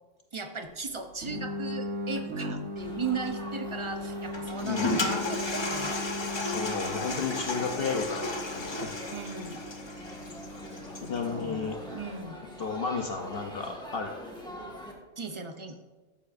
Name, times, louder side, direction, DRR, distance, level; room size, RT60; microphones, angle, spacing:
voice 1, 0.3-6.0 9.1-9.6 11.3-12.4 15.2-15.8, right 4 dB, 30° right, 6 dB, 0.6 m, -37 dB
sound 1, 1.2-12.0, left 1 dB, 70° right, 1.5 m, -38 dB
Laughter / Chatter / Crowd, 2.8-14.9, equal, 5° left, 1.4 m, -46 dB
Toilet flush, 4.3-11.3, left 2 dB, 25° left, 0.7 m, -34 dB
voice 2, 4.6-4.9 6.4-9.0 11.0-11.8 12.6-14.1, left 5 dB, 55° left, 4 dB, 0.8 m, -33 dB
13.0 x 7.2 x 2.5 m, 1.3 s
omnidirectional pair, 1.3 m